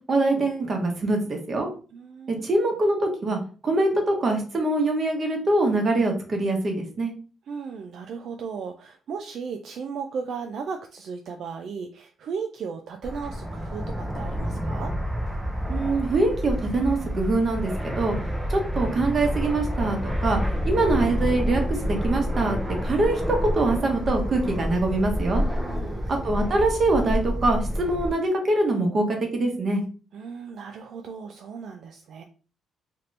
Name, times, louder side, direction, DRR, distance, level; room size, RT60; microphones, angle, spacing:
voice 1, 0.1-1.7 2.3-7.1 15.7-17.7 18.0-18.2 18.5-25.4 26.1-29.8, right 2 dB, 40° right, 2 dB, 1.1 m, -24 dB
voice 2, 1.9-2.4 7.5-14.9 25.6-26.1 30.1-32.2, right 5 dB, 65° right, 4 dB, 0.3 m, -36 dB
Fixed-wing aircraft airplane, 13.0-28.1, equal, 10° right, 0.6 m, -28 dB
2.9 x 2.5 x 3.2 m, 0.38 s
cardioid pair, 90°, 0 cm